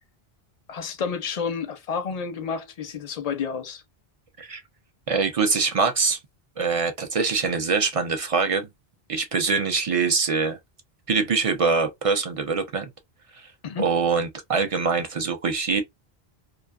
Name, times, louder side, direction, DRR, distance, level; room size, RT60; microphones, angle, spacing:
voice 1, 0.7-3.8 13.6-13.9, left 6 dB, 50° left, 0.5 m, -30 dB
voice 2, 5.1-6.2 6.6-8.7 9.1-10.6 11.1-12.9 13.3-13.5 13.8-15.8, right 4 dB, 50° right, 0.4 m, -24 dB
2.5 x 2.3 x 2.2 m
omnidirectional pair, 1.0 m